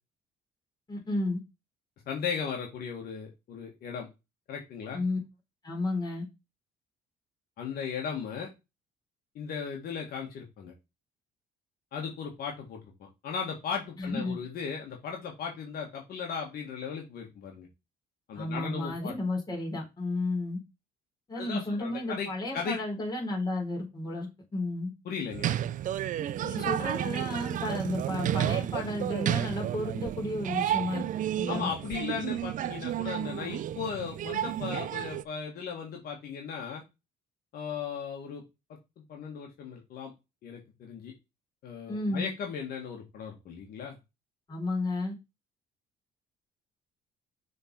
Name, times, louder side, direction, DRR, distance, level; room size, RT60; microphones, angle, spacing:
voice 1, 0.9-1.4 4.9-5.2 5.6-6.3 14.0-14.4 18.4-20.6 21.3-24.9 26.4-31.1 31.4-31.7 41.9-42.3 44.5-45.1, left 2 dB, 25° left, 3.6 m, -32 dB
voice 2, 2.1-4.1 4.5-5.0 7.6-8.5 9.4-10.7 11.9-17.7 18.3-19.1 21.3-22.8 25.1-25.6 31.5-36.8 37.5-38.4 39.1-40.1 40.4-41.1 41.6-44.0, left 6 dB, 65° left, 1.7 m, -37 dB
sound 1, 25.3-35.2, right 11 dB, 50° right, 0.4 m, -31 dB
6.6 x 3.9 x 4.5 m
cardioid pair, 110°, 17 cm